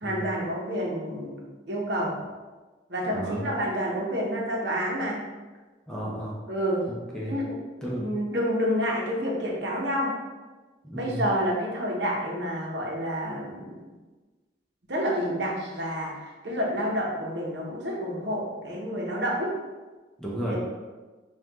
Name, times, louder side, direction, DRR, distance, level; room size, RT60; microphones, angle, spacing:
voice 1, 0.0-2.1 2.9-5.2 6.5-6.8 7.3-7.6 8.0-10.1 10.9-13.8 14.9-19.5 20.5-20.6, equal, 65° right, -3 dB, 0.9 m, -29 dB
voice 2, 3.1-3.5 5.9-6.4 6.9-7.4 7.8-8.1 10.8-11.2 20.2-20.6, equal, 5° left, -5 dB, 0.6 m, -33 dB
5.5 x 2.4 x 3.0 m, 1.3 s
head